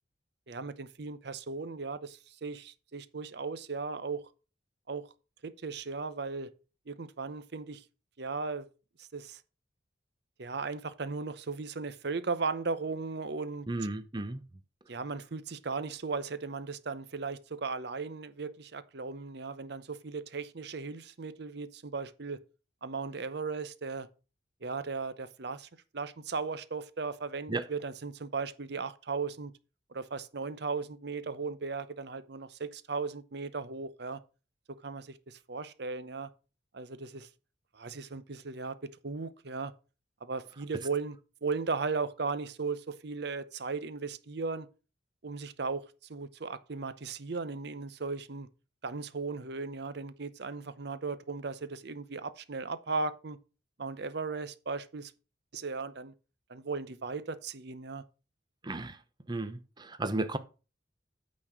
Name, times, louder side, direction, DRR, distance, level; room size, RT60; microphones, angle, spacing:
voice 1, 0.5-4.3 4.9-5.1 5.4-6.5 6.9-7.8 8.2-8.7 9.0-9.4 10.4-13.7 14.9-22.4 22.8-24.1 24.6-29.5 29.9-34.2 34.8-36.3 36.7-37.3 37.7-39.7 40.2-44.7 45.2-45.8 46.1-48.5 48.8-53.4 53.8-55.1 55.5-56.1 56.5-58.0, right 4 dB, 60° right, 0.7 m, -37 dB
voice 2, 13.7-14.4 27.5-27.6 58.6-59.0 59.3-60.4, right 2 dB, 25° right, 0.8 m, -34 dB
9.0 x 4.2 x 6.2 m
head